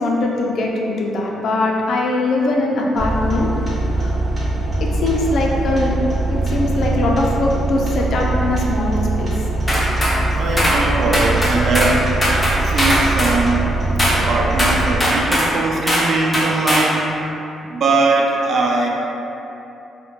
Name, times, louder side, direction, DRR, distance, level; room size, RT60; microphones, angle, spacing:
voice 1, 0.0-3.5 3.9-4.2 4.9-6.0 6.3-9.3, left 2 dB, 65° left, -1 dB, 0.4 m, -21 dB
sound 1, 3.0-15.0, right 2 dB, 40° right, 0.7 m, -22 dB
sound 2, 9.7-10.2 10.6-10.8 11.1-12.0 12.2-13.4 14.0-14.2 14.6-15.5 15.9-16.1 16.3-16.9, equal, 15° left, 0.6 m, -18 dB
voice 2, 10.4-12.1 12.6-13.8 14.1-17.1 17.6-18.9, right 3 dB, 55° right, 0 dB, 0.3 m, -20 dB
2.4 x 2.1 x 3.0 m, 2.9 s
cardioid pair, 90°, 0 cm